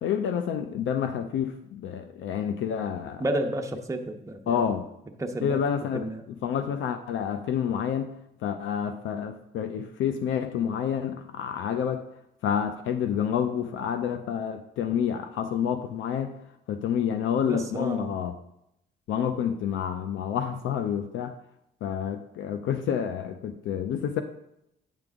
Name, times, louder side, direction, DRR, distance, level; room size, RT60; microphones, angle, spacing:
voice 1, 0.0-3.2 4.5-4.9 5.4-8.1 8.4-12.1 12.4-16.4 16.7-18.3 19.1-21.3 21.8-24.2, left 8 dB, 75° left, 8 dB, 0.5 m, -29 dB
voice 2, 3.2-4.7 5.2-5.6 5.9-6.2 17.4-18.2, right 1 dB, 15° right, 3 dB, 0.8 m, -31 dB
8.8 x 5.2 x 3.6 m, 0.81 s
cardioid pair, 90°, 20 cm